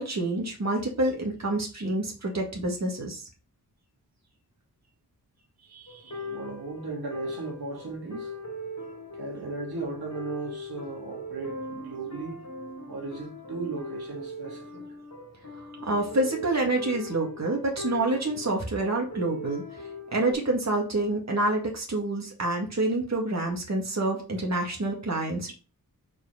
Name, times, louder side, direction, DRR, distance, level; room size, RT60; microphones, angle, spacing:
voice 1, 0.0-3.2 15.9-19.6 20.1-25.5, right 2 dB, 45° right, 2.0 m, -27 dB
voice 2, 5.6-8.3 9.1-12.4 12.9-14.9, right 4 dB, 80° right, 2.4 m, -37 dB
sound 1, 5.9-20.3, left 1 dB, 50° left, 2.3 m, -40 dB
4.9 x 4.5 x 5.0 m
cardioid pair, 50°, 37 cm